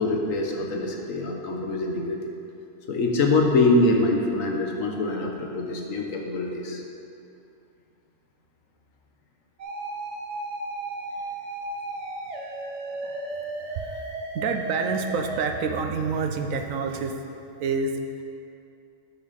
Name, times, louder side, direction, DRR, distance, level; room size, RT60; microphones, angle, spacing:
voice 1, 0.0-2.3 2.9-6.8 13.0-13.1, left 2 dB, 80° left, 1 dB, 1.4 m, -24 dB
sound 1, 9.6-15.4, right 2 dB, 60° right, 1.2 m, -34 dB
voice 2, 13.7-14.1 14.3-17.2 17.6-18.0, right 4 dB, 80° right, 5 dB, 1.1 m, -27 dB
12.0 x 6.5 x 4.1 m, 2.6 s
omnidirectional pair, 1.4 m